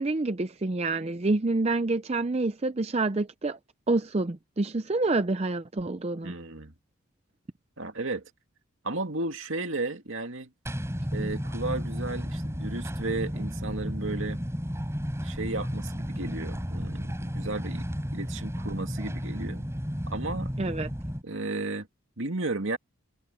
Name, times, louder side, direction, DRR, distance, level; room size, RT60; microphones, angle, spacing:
voice 1, 0.0-3.6 3.9-6.3 20.6-20.9, right 2 dB, 30° right, 0.5 m, -27 dB
voice 2, 6.2-6.7 7.8-8.3 8.8-10.5 11.1-14.4 15.2-17.8 18.1-19.7 20.1-20.5 21.2-21.9 22.2-22.8, right 2 dB, 65° right, 2.3 m, -34 dB
sound 1, 10.7-21.2, equal, 15° right, 6.3 m, -33 dB
head